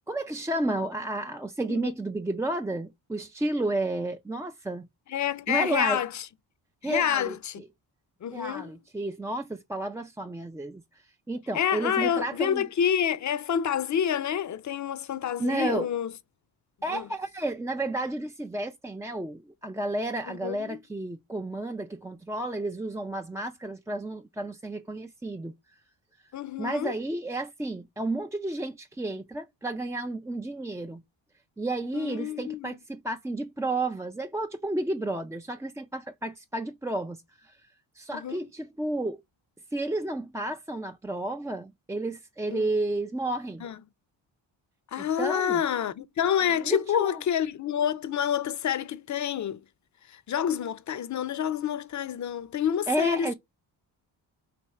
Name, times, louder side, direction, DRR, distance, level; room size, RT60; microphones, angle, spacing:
voice 1, 0.1-4.9 5.5-6.0 6.8-7.6 8.3-10.8 11.3-12.7 15.4-15.9 16.8-25.5 26.6-31.0 31.6-37.6 37.9-39.2 39.7-43.7 45.0-45.6 46.6-47.2 52.9-53.3, right 2 dB, 5° right, 0.3 m, -31 dB
voice 2, 5.1-6.3 6.8-7.6 8.2-8.7 11.5-16.1 16.9-17.1 20.3-20.8 26.3-26.9 31.9-32.8 38.1-38.4 42.5-42.7 43.6-43.8 44.9-49.6 50.1-53.3, left 9 dB, 40° left, 0.6 m, -28 dB
3.5 x 2.7 x 4.2 m
supercardioid pair, 55°, 48 cm